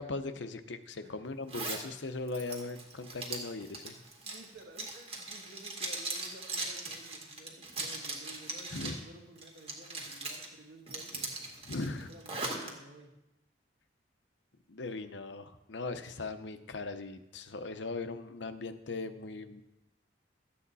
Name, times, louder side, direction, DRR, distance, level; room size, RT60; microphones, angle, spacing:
voice 1, 0.0-4.0 8.7-9.0 11.6-12.1 14.7-19.6, left 3 dB, 75° left, 10 dB, 0.8 m, -39 dB
Zipper (clothing), 1.5-1.8 2.3-9.0 9.4-10.5 10.9-12.7, right 3 dB, 35° right, 1.9 m, -39 dB
voice 2, 4.2-11.4 12.0-13.1, right 1 dB, 70° right, 2 dB, 1.9 m, -53 dB
13.0 x 8.5 x 4.1 m, 0.94 s
head